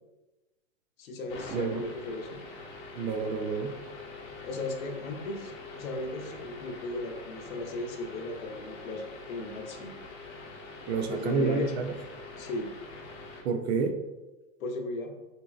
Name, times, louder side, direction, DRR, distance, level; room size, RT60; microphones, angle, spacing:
voice 1, 1.0-2.4 4.4-9.9 10.9-11.7 12.4-12.7 14.6-15.1, left 2 dB, 80° left, 4 dB, 0.7 m, -36 dB
sound 1, 1.3-13.4, left 3 dB, 35° left, 0.8 m, -45 dB
voice 2, 1.5-1.8 3.0-3.8 10.9-11.9 13.4-14.0, right 4 dB, 55° right, 7 dB, 0.4 m, -29 dB
4.0 x 2.7 x 2.3 m, 1.1 s
hypercardioid pair, 120°, 41 cm